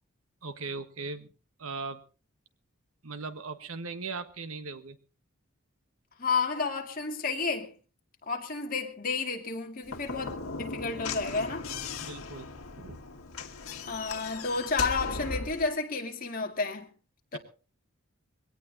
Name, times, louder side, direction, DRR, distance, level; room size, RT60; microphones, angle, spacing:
voice 1, 0.4-1.3 1.6-2.0 3.0-5.0 12.0-13.0, right 4 dB, 80° right, 1.5 m, -39 dB
voice 2, 6.2-7.7 8.2-11.7 13.9-16.9 17.3-17.4, left 4 dB, 40° left, 2.3 m, -31 dB
Slam / Knock, 9.8-15.7, left 4 dB, 90° left, 1.6 m, -38 dB
22.5 x 17.5 x 2.8 m
head